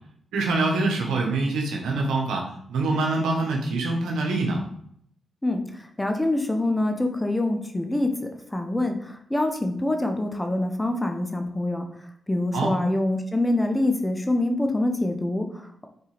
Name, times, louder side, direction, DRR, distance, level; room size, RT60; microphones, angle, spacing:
voice 1, 0.3-4.6 12.5-12.7, right 3 dB, 85° right, 0 dB, 1.3 m, -25 dB
voice 2, 5.4-11.9 12.3-15.9, left 1 dB, 15° left, 5 dB, 1.0 m, -25 dB
7.0 x 4.4 x 3.5 m, 0.68 s
supercardioid pair, 45°, 0 cm